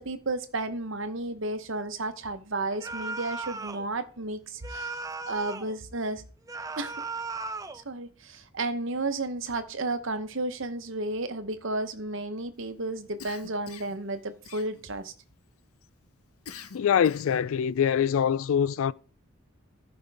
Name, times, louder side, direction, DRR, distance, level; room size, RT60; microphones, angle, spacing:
voice 1, 0.0-5.0 5.2-6.2 6.8-7.0 7.8-15.1, right 2 dB, 60° right, 0.9 m, -32 dB
sound 1, 2.8-3.9 4.6-5.7 6.5-7.8, right 3 dB, 15° right, 0.4 m, -36 dB
Cough, 13.2-14.0 14.4-15.1 16.5-17.5, left 6 dB, 85° left, 0.8 m, -45 dB
voice 2, 16.7-18.9, left 8 dB, 70° left, 0.3 m, -24 dB
14.5 x 5.2 x 3.5 m
head